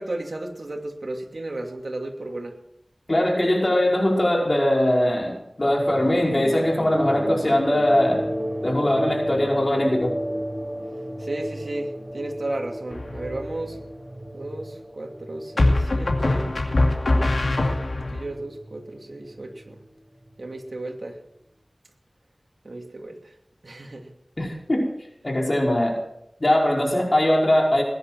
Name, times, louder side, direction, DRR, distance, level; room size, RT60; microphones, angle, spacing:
voice 1, 0.0-2.5 11.2-13.8 14.3-16.6 18.1-19.8 20.4-21.2 22.6-23.2 23.6-24.1, right 2 dB, 65° right, 2 dB, 2.6 m, -34 dB
voice 2, 3.1-8.2 8.6-10.1 24.4-24.8 25.2-26.0 26.4-27.8, left 1 dB, 45° left, -1 dB, 5.0 m, -21 dB
sound 1, 5.7-20.6, equal, 25° right, 4.9 m, -34 dB
sound 2, 12.9-13.5 15.6-18.2, left 2 dB, 80° left, 2.4 m, -22 dB
20.5 x 10.0 x 6.2 m, 0.79 s
wide cardioid pair, 45°, 0 cm